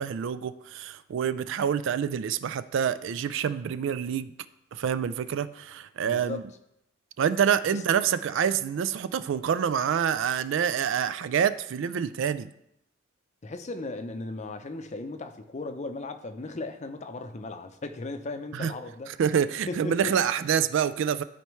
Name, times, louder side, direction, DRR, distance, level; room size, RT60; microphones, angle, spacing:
voice 1, 0.0-4.3 4.7-6.4 7.2-12.5 18.5-18.7 19.1-21.2, right 8 dB, 65° right, 14 dB, 0.3 m, -27 dB
voice 2, 6.0-6.5 7.6-7.8 13.4-19.1 19.7-20.2, left 2 dB, 35° left, 8 dB, 0.6 m, -36 dB
12.5 x 4.3 x 3.1 m, 0.79 s
head